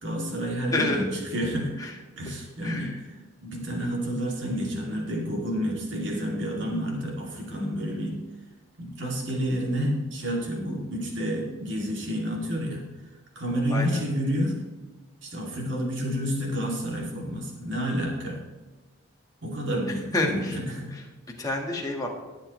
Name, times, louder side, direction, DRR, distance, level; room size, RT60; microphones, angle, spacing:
voice 1, 0.0-1.0 1.3-1.7 2.2-2.9 3.4-8.2 8.8-12.8 13.3-14.6 15.2-18.4 19.4-20.9, equal, 60° right, -2 dB, 2.7 m, -29 dB
voice 2, 0.7-1.1 1.8-1.9 2.6-3.0 13.7-14.0 19.9-20.6 20.9-21.0 21.4-22.1, left 2 dB, 15° left, -1 dB, 1.5 m, -29 dB
19.0 x 7.3 x 3.2 m, 1.3 s
head